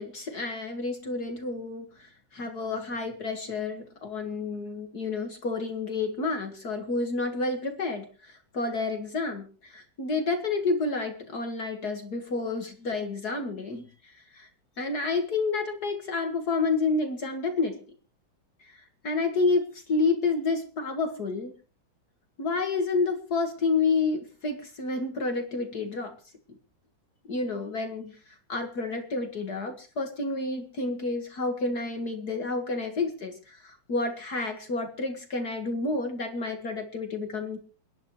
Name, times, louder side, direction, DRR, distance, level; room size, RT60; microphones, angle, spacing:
voice 1, 0.0-14.5 14.8-17.8 18.6-21.5 22.4-26.1 27.2-28.1 28.5-37.6, left 3 dB, 50° left, 5 dB, 2.3 m, -30 dB
29.0 x 10.5 x 3.1 m, 0.37 s
omnidirectional pair, 2.2 m